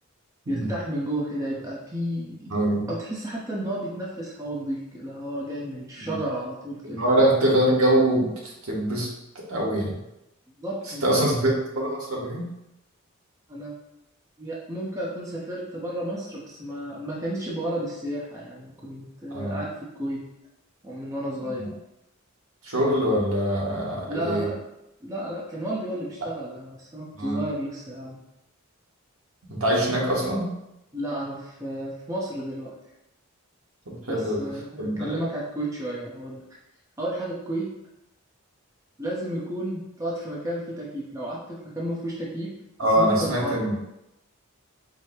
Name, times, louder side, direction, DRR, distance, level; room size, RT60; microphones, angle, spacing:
voice 1, 0.5-2.5 2.9-7.1 10.6-11.3 13.5-13.7 14.4-20.2 20.8-21.7 24.1-24.6 25.0-28.2 30.9-32.7 34.1-36.4 37.0-37.7 39.0-42.5 43.0-43.6, right 1 dB, 15° right, -4 dB, 0.6 m, -32 dB
voice 2, 2.5-2.9 6.0-6.2 6.8-9.1 9.3-10.0 11.0-12.5 19.3-19.6 21.5-21.7 22.6-24.5 27.1-27.4 29.5-30.5 33.9-34.5 34.8-35.2 42.8-43.8, right 1 dB, 75° right, -3 dB, 1.2 m, -24 dB
4.7 x 2.0 x 4.4 m, 0.87 s
head